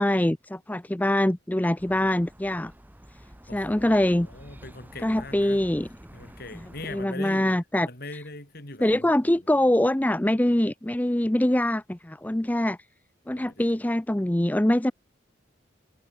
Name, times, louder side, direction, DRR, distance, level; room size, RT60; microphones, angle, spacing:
voice 1, 0.0-2.7 3.5-4.3 5.0-5.9 6.5-7.9 8.8-12.8 13.3-14.9, left 1 dB, 10° left, 0.5 m, -24 dB
sound 1, 1.8-7.1, equal, 10° right, 5.3 m, -48 dB
voice 2, 3.5-5.6 6.1-7.4 7.8-9.4 13.3-13.7, left 2 dB, 50° left, 5.6 m, -42 dB
head